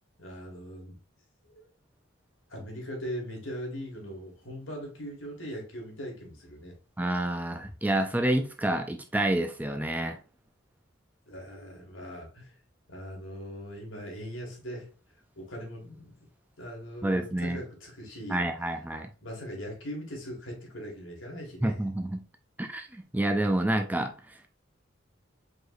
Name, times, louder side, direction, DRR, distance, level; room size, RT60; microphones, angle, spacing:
voice 1, 0.2-1.0 1.4-1.7 2.5-6.7 11.3-12.5 12.9-14.9 15.4-16.1 16.6-18.4 19.2-21.8, equal, 75° left, 2.1 m, -40 dB
voice 2, 7.0-10.2 17.0-17.6 18.3-19.1 21.6-22.2 22.6-24.5, right 1 dB, 10° right, 0.4 m, -28 dB
4.9 x 4.0 x 2.5 m
head